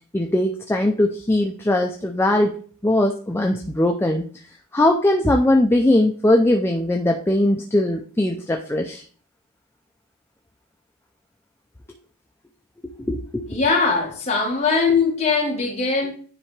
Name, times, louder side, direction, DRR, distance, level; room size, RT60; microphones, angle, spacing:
voice 1, 0.1-2.6 2.8-4.3 4.7-9.0 12.8-13.6, left 1 dB, 10° left, 2 dB, 0.4 m, -20 dB
voice 2, 13.5-16.1, left 4 dB, 30° left, -1 dB, 1.6 m, -21 dB
9.8 x 3.4 x 3.2 m, 0.43 s
head